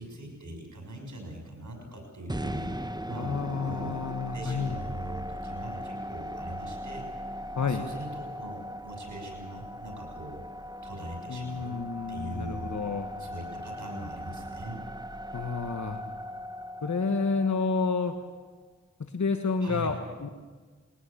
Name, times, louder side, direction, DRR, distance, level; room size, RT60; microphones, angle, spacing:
voice 1, 0.0-3.9 4.3-7.1 7.5-10.4 10.8-11.8 12.1-12.8 13.2-14.8 19.6-19.9, right 1 dB, 90° right, 2 dB, 6.4 m, -41 dB
sound 1, 2.3-18.4, equal, 15° right, 1.2 m, -39 dB
voice 2, 3.2-4.8 7.6-7.9 11.3-13.1 15.3-16.0 16.8-18.1 19.0-20.3, left 4 dB, 75° left, 7 dB, 1.4 m, -30 dB
21.5 x 18.5 x 8.5 m, 1.4 s
wide cardioid pair, 45°, 29 cm